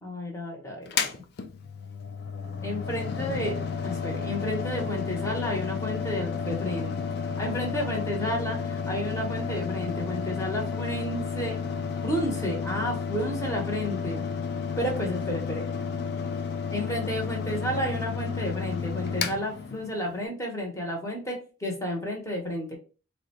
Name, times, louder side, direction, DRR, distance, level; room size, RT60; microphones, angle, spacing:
voice 1, 0.0-1.1 2.6-3.6 3.8-7.0 7.4-11.6 12.0-14.2 14.8-15.6 16.7-22.8, equal, 15° left, 0 dB, 0.8 m, -31 dB
Mechanical fan, 0.9-20.2, left 6 dB, 50° left, 0.3 m, -32 dB
3.7 x 2.1 x 2.8 m, 0.35 s
head